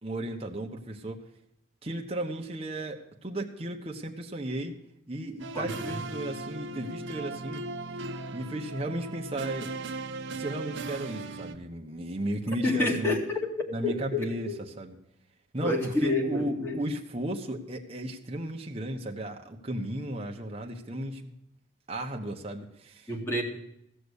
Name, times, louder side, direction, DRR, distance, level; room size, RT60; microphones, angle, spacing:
voice 1, 0.0-1.2 1.8-4.7 5.1-7.6 8.3-9.7 10.3-13.2 13.7-14.5 14.8-14.9 15.5-21.3 21.9-23.1, right 1 dB, 30° right, 1 dB, 1.2 m, -35 dB
sound 1, 5.4-11.5, right 3 dB, 75° right, 0.9 m, -38 dB
voice 2, 5.5-6.0 12.6-14.6 15.6-16.8 23.1-23.4, left 2 dB, 10° left, -1 dB, 2.2 m, -29 dB
16.0 x 7.0 x 8.2 m, 0.77 s
head